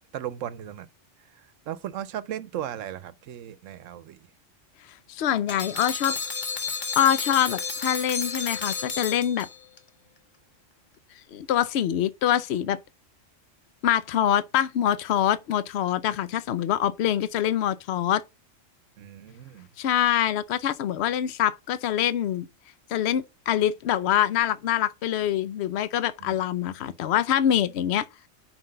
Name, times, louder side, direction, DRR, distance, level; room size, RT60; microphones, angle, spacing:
voice 1, 0.1-0.9 1.2-4.3 19.0-19.7 26.2-26.4, right 10 dB, 80° right, 1.0 m, -36 dB
voice 2, 5.1-6.2 6.9-9.5 11.3-12.8 13.8-18.2 19.8-22.5 22.9-28.1, left 10 dB, 65° left, 0.8 m, -25 dB
sound 1, 5.5-9.8, left 4 dB, 40° left, 1.3 m, -32 dB
5.7 x 4.6 x 6.4 m
omnidirectional pair, 1.3 m